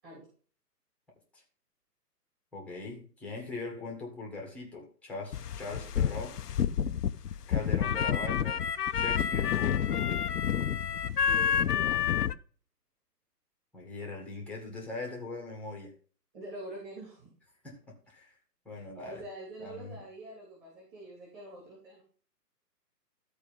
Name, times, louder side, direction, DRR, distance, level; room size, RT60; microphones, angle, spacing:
voice 1, 2.5-6.4 7.5-8.7 8.9-10.3 13.7-15.9 17.6-18.4 18.6-19.2 19.6-20.0, left 3 dB, 5° left, 0 dB, 1.4 m, -41 dB
sound 1, 5.3-12.3, left 8 dB, 70° left, 0.7 m, -29 dB
voice 2, 11.2-12.2 16.3-17.3 18.7-22.0, right 1 dB, 20° right, -5 dB, 3.2 m, -45 dB
13.5 x 4.6 x 5.3 m, 0.41 s
figure-of-eight pair, 140°, 49 cm